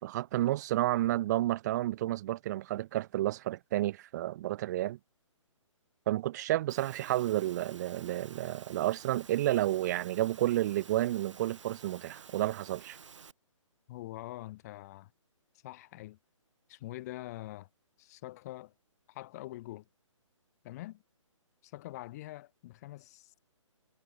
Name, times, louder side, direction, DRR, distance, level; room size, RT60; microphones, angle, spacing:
voice 1, 0.0-5.0 6.1-13.0, right 15 dB, 35° right, 2.6 m, -31 dB
Engine / Mechanisms, 6.7-13.3, right 6 dB, 65° right, 5.6 m, -52 dB
voice 2, 13.9-15.1 15.6-16.2 16.7-17.7 18.0-18.7 19.1-19.9 20.6-21.0 21.6-23.4, left 17 dB, 30° left, 2.9 m, -44 dB
hypercardioid pair, 155°, 17 cm